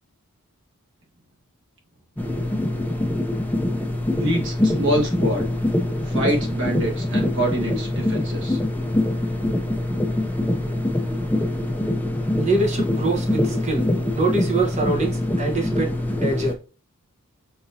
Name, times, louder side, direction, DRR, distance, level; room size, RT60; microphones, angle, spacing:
sound 1, 2.2-16.5, left 1 dB, 10° left, 0.5 m, -24 dB
voice 1, 4.1-5.5 6.1-8.6, right 1 dB, 55° right, 1 dB, 1.3 m, -25 dB
voice 2, 12.4-13.8 14.1-16.6, right 2 dB, 30° right, 1 dB, 1.0 m, -24 dB
5.5 x 2.8 x 2.7 m, 0.35 s
head